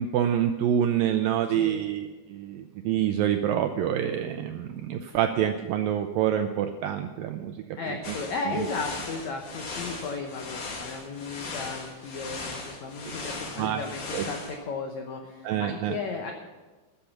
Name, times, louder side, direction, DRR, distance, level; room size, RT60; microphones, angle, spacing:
voice 1, 0.0-8.2 8.5-8.7 13.6-13.8 14.1-14.3 15.4-16.0, right 10 dB, 85° right, 7 dB, 2.0 m, -27 dB
voice 2, 1.5-1.8 7.8-16.3, left 4 dB, 85° left, 3 dB, 1.6 m, -35 dB
sound 1, 8.0-14.6, left 3 dB, 55° left, 3.3 m, -38 dB
13.5 x 8.5 x 7.0 m, 1.2 s
omnidirectional pair, 4.7 m